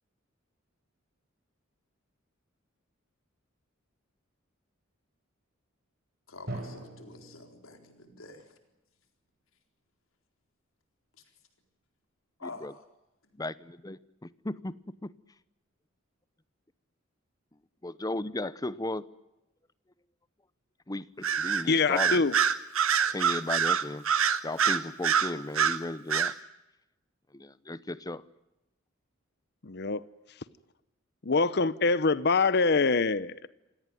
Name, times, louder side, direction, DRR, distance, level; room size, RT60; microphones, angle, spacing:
voice 1, 6.3-8.5 12.4-12.9, left 3 dB, 75° left, 6 dB, 4.1 m, -47 dB
Drum, 6.5-8.4, right 1 dB, 50° right, 5.9 m, -42 dB
voice 2, 12.4-12.7 13.4-14.7 15.0-15.1 17.8-19.0 20.9-22.2 23.1-24.0 24.4-26.3 27.3-28.2, left 2 dB, 20° left, 17 dB, 0.8 m, -35 dB
Bird vocalization bird call bird song, 21.2-21.6 22.0-25.8 26.1-26.3, right 7 dB, 80° right, 1.6 m, -25 dB
voice 3, 21.7-22.3 23.0-23.1 29.6-30.0 31.2-33.5, left 4 dB, 50° left, 17 dB, 0.8 m, -25 dB
27.0 x 18.0 x 9.2 m, 0.94 s
head